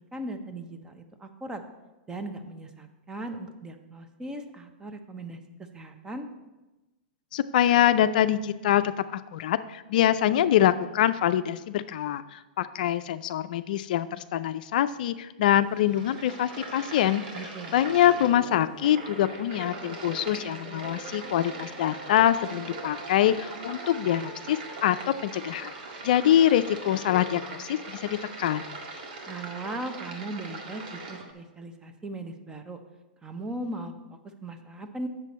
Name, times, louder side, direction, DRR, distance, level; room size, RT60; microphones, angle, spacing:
voice 1, 0.1-1.6 2.1-5.4 5.7-6.3 17.3-17.7 29.3-32.8 33.2-35.1, right 2 dB, 15° right, 7 dB, 0.8 m, -38 dB
voice 2, 7.3-17.5 17.7-25.7 26.0-28.7, left 11 dB, 65° left, 12 dB, 0.4 m, -24 dB
sound 1, 15.6-31.2, right 3 dB, 65° right, 1.7 m, -41 dB
sound 2, 17.8-29.2 31.0-31.3, right 4 dB, 45° right, 0.9 m, -47 dB
8.1 x 6.8 x 4.2 m, 1.1 s
hypercardioid pair, 120°, 5 cm